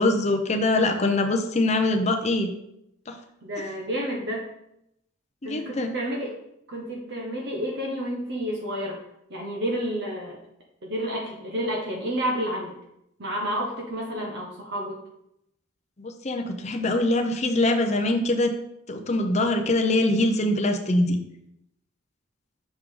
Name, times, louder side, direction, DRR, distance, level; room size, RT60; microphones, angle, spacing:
voice 1, 0.0-2.5 3.1-3.2 5.4-5.9 16.0-18.5 18.9-21.2, left 2 dB, 35° left, 4 dB, 0.6 m, -23 dB
voice 2, 3.4-4.5 5.4-6.3 6.7-9.0 9.3-10.4 10.8-12.7 13.2-15.0, equal, 55° right, -2 dB, 1.0 m, -30 dB
6.4 x 4.7 x 3.8 m, 0.79 s
head